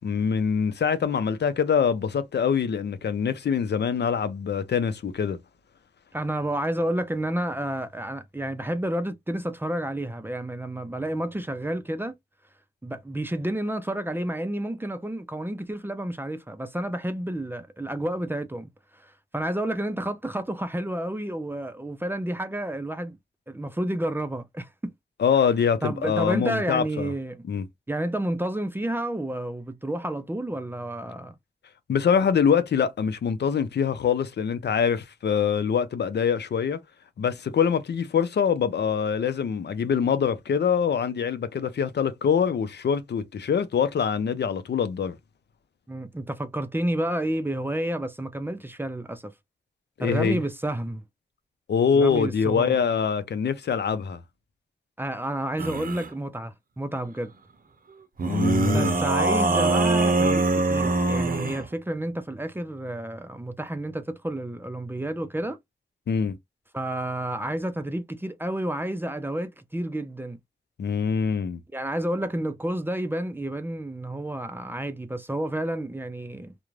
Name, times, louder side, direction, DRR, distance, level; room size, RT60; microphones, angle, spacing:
voice 1, 0.0-5.4 25.2-27.1 27.5-27.7 31.9-36.8 37.2-45.2 50.0-50.4 51.7-54.2 58.3-59.1 66.1-66.4 70.8-71.6, left 7 dB, 80° left, 0.5 m, -24 dB
voice 2, 6.1-12.1 12.8-23.2 23.5-24.9 25.8-27.4 27.9-31.4 45.9-49.3 50.0-51.0 51.9-52.8 55.0-57.3 58.7-65.6 66.7-70.4 71.7-76.5, right 1 dB, 10° right, 0.4 m, -30 dB
sound 1, 55.6-56.1 58.2-61.7, right 2 dB, 55° right, 0.6 m, -23 dB
2.4 x 2.1 x 3.1 m
wide cardioid pair, 75°, 17 cm